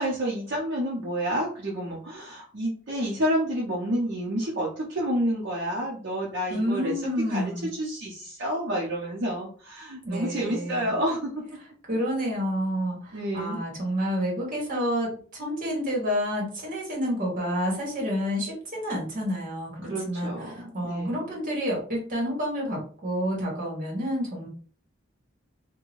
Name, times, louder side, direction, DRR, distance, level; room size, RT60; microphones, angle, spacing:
voice 1, 0.0-7.0 7.3-11.3 13.1-13.6 19.8-21.3, equal, 60° right, -6 dB, 0.8 m, -29 dB
voice 2, 6.5-7.7 10.0-10.9 11.9-24.5, equal, 45° right, -2 dB, 1.3 m, -29 dB
2.7 x 2.3 x 3.0 m, 0.43 s
head